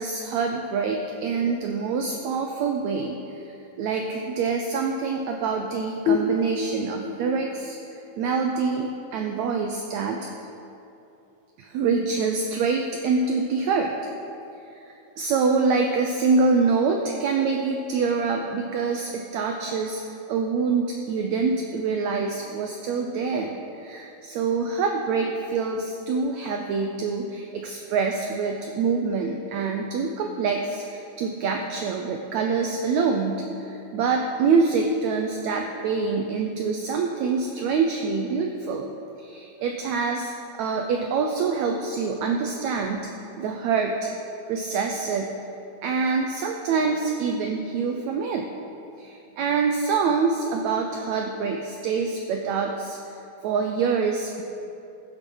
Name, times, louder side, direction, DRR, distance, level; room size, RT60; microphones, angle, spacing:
voice 1, 0.0-7.8 8.2-10.3 11.6-13.9 14.7-38.9 39.2-43.1 43.4-44.1 44.5-45.4 45.8-48.5 49.0-53.0 53.4-54.4, right 4 dB, 90° right, 3 dB, 1.6 m, -25 dB
sound 1, 6.1-9.5, left 5 dB, 75° left, 1.8 m, -29 dB
14.5 x 6.1 x 5.4 m, 2.7 s
omnidirectional pair, 3.9 m